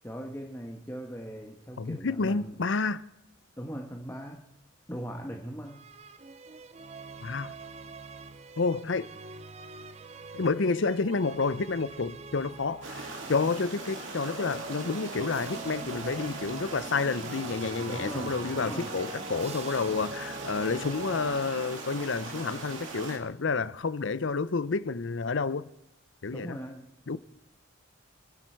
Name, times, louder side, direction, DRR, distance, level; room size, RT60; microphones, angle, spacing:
voice 1, 0.0-2.6 3.6-4.4 4.9-5.8 17.9-18.9 26.3-27.2, equal, 10° left, 1.3 m, -40 dB
voice 2, 1.8-3.0 7.2-7.5 8.6-9.1 10.3-25.7 26.2-26.6 27.1-27.2, left 4 dB, 60° left, 0.6 m, -30 dB
sound 1, 5.6-13.5 14.1-22.0, right 3 dB, 30° right, 0.5 m, -44 dB
sound 2, 12.8-23.2, right 3 dB, 70° right, 2.6 m, -40 dB
28.5 x 10.5 x 4.6 m
head